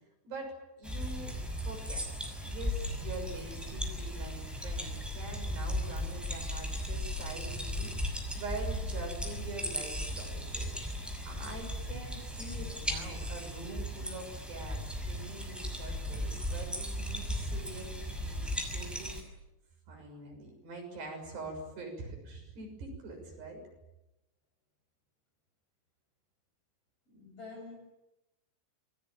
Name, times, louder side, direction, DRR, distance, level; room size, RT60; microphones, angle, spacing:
voice 1, 0.3-2.0 2.4-14.8 15.1-19.1 19.9-23.6, right 2 dB, 60° right, 2 dB, 8.8 m, -44 dB
sound 1, 0.8-19.2, equal, ahead, 5.5 m, -36 dB
voice 2, 27.1-27.8, left 3 dB, 30° left, 1 dB, 8.8 m, -47 dB
27.5 x 23.0 x 9.0 m, 0.93 s
omnidirectional pair, 5.4 m